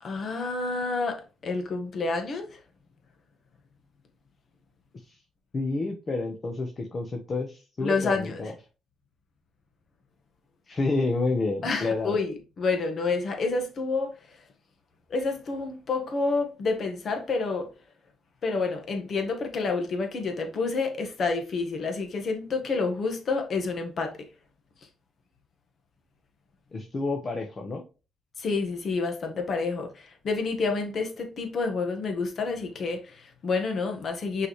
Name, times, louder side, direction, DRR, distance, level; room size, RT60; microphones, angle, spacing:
voice 1, 0.0-2.6 7.8-8.5 11.6-14.2 15.1-17.7 18.4-24.2 28.4-34.5, left 4 dB, 55° left, 1.6 m, -29 dB
voice 2, 5.5-8.5 10.7-12.2 26.7-27.8, left 3 dB, 40° left, 1.1 m, -29 dB
5.9 x 4.9 x 3.2 m
cardioid pair, 90°, 0 cm